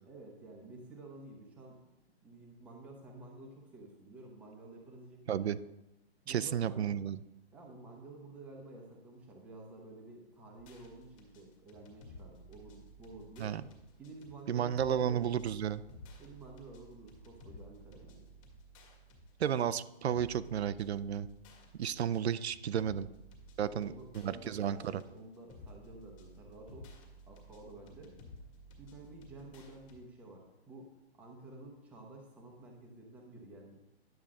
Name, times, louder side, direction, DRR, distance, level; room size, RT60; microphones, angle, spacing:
voice 1, 0.0-1.9 2.2-5.5 6.2-7.0 7.5-13.6 14.0-15.3 16.2-18.3 23.6-26.9 27.3-28.1 28.7-33.8, right 2 dB, 5° right, -1 dB, 0.7 m, -51 dB
voice 2, 5.3-5.6 6.3-7.2 13.4-13.6 14.5-15.8 19.4-21.3 21.8-23.1 23.6-25.0, right 9 dB, 75° right, 13 dB, 0.5 m, -33 dB
sound 1, 10.6-30.0, equal, 30° left, 1.8 m, -55 dB
10.5 x 7.2 x 3.7 m, 0.90 s
hypercardioid pair, 160°, 33 cm